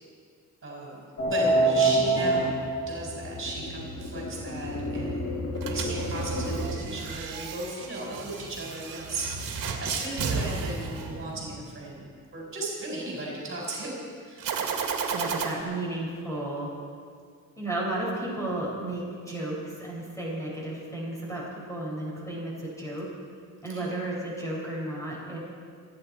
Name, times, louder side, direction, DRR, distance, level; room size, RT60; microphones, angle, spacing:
voice 1, 0.6-1.0 1.3-2.6 2.9-14.4 23.7-23.9, right 2 dB, 40° right, -3 dB, 4.3 m, -36 dB
sound 1, 1.2-6.7, right 2 dB, 45° left, 2.7 m, -27 dB
sound 2, 5.6-11.7 14.4-15.5, right 5 dB, 75° right, 1.9 m, -33 dB
voice 2, 15.1-16.7 17.6-23.1 23.6-25.4, right 1 dB, 10° left, -5 dB, 5.1 m, -33 dB
28.5 x 10.0 x 4.3 m, 2.2 s
cardioid pair, 140°, 33 cm